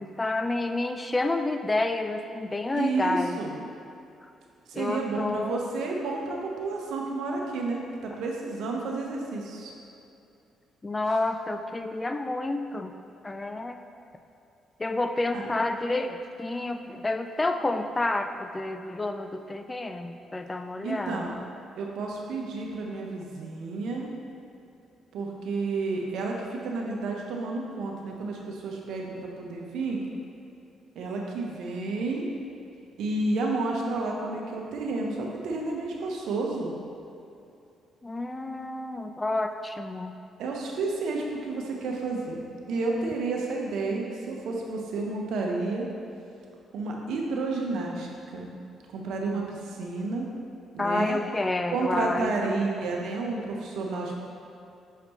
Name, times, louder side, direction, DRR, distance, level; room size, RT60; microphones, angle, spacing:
voice 1, 0.0-3.4 4.7-5.6 10.8-12.9 13.2-13.8 14.8-21.5 38.0-40.1 50.8-52.3, left 2 dB, 20° left, 7 dB, 0.3 m, -29 dB
voice 2, 2.7-3.6 4.7-9.7 15.3-15.5 20.8-21.3 21.7-24.1 25.1-30.0 30.9-32.3 33.0-36.7 40.4-45.9 46.7-48.5 48.9-50.3 50.7-51.2 51.7-54.2, right 3 dB, 80° right, 0 dB, 0.9 m, -31 dB
6.5 x 5.1 x 3.0 m, 2.7 s
cardioid pair, 90°, 0 cm